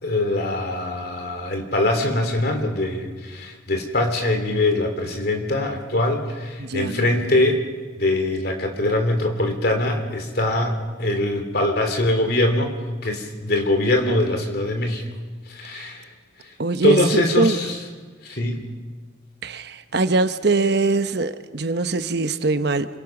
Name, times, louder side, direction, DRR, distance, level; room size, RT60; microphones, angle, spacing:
voice 1, 0.0-7.6 8.0-12.7 13.0-15.0 15.5-16.1 16.8-17.8 18.2-18.6, left 1 dB, 50° left, 5 dB, 3.2 m, -22 dB
voice 2, 6.6-7.1 16.6-17.5 19.4-22.9, right 3 dB, 55° right, 10 dB, 0.9 m, -22 dB
26.5 x 23.0 x 6.0 m, 1.4 s
head